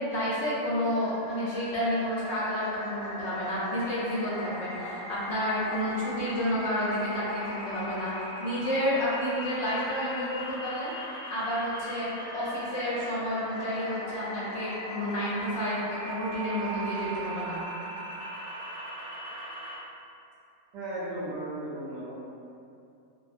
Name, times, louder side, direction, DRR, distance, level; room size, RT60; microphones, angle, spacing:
voice 1, 0.1-10.9 11.3-17.6, equal, 65° left, -7 dB, 0.8 m, -30 dB
sound 1, 1.0-19.8, equal, 5° right, 0.6 m, -39 dB
voice 2, 20.7-22.1, right 1 dB, 65° right, -8 dB, 0.8 m, -35 dB
2.6 x 2.0 x 2.5 m, 2.6 s
omnidirectional pair, 1.5 m